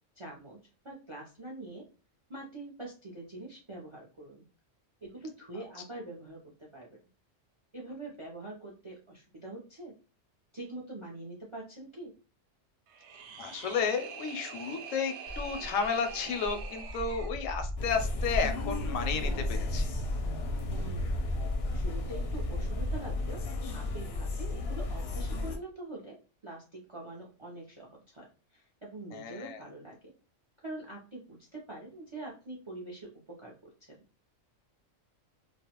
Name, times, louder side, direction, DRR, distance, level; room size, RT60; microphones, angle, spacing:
voice 1, 0.2-0.6 0.8-1.9 2.3-4.4 5.0-7.0 7.7-10.0 10.5-12.2 20.7-21.2 21.7-26.2 26.4-30.1 30.6-34.0, right 2 dB, 50° right, -2 dB, 0.3 m, -44 dB
sound 1, 12.9-17.3, right 6 dB, 65° right, 0.8 m, -44 dB
voice 2, 13.4-19.9 29.1-29.6, left 5 dB, 90° left, 7 dB, 1.0 m, -32 dB
Walk footsteps, 15.3-23.0, equal, 5° right, 0.6 m, -36 dB
sound 2, 17.8-25.6, left 2 dB, 65° left, 0.7 m, -34 dB
2.4 x 2.1 x 2.8 m, 0.34 s
omnidirectional pair, 1.3 m